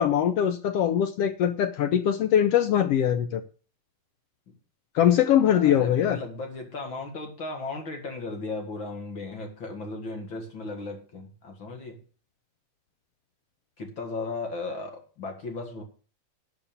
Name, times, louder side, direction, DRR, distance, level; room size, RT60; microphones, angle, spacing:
voice 1, 0.0-3.4 4.9-6.2, left 10 dB, 75° left, 1.5 m, -22 dB
voice 2, 5.5-12.0 13.8-15.8, left 3 dB, 45° left, 2.3 m, -36 dB
11.5 x 5.6 x 7.0 m
omnidirectional pair, 3.4 m